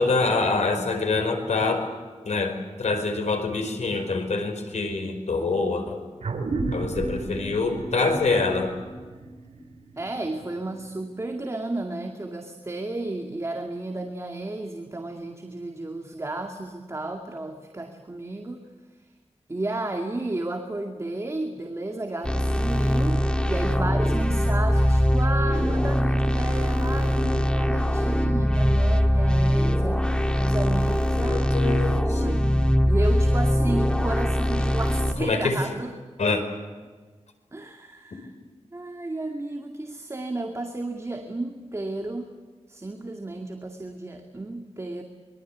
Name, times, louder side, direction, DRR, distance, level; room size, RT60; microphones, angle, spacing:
voice 1, 0.0-1.9 2.2-6.0 6.7-8.7 31.2-32.2 35.2-35.6 36.2-36.4, left 3 dB, 90° left, 6 dB, 5.0 m, -25 dB
sound 1, 6.2-11.1, right 3 dB, 75° right, 3.4 m, -33 dB
voice 2, 10.0-18.6 19.5-32.5 32.9-35.9 37.5-38.3 38.7-42.3 42.7-45.0, right 2 dB, 25° right, 3 dB, 2.3 m, -33 dB
sound 2, 22.2-35.1, equal, 10° left, 1.8 m, -22 dB
25.0 x 23.5 x 8.4 m, 1.4 s
wide cardioid pair, 115°, 11 cm